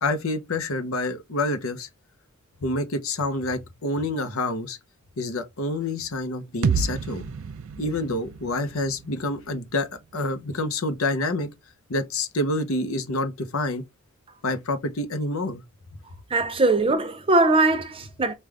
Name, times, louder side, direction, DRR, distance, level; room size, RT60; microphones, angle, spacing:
voice 1, 0.0-1.9 2.6-4.8 5.2-7.3 7.8-11.5 11.9-13.8 14.4-15.6, left 2 dB, 70° left, 0.9 m, -27 dB
sound 1, 6.6-10.5, right 5 dB, 65° right, 0.4 m, -31 dB
voice 2, 16.3-18.3, right 2 dB, 25° right, 0.6 m, -21 dB
5.4 x 2.5 x 3.3 m
head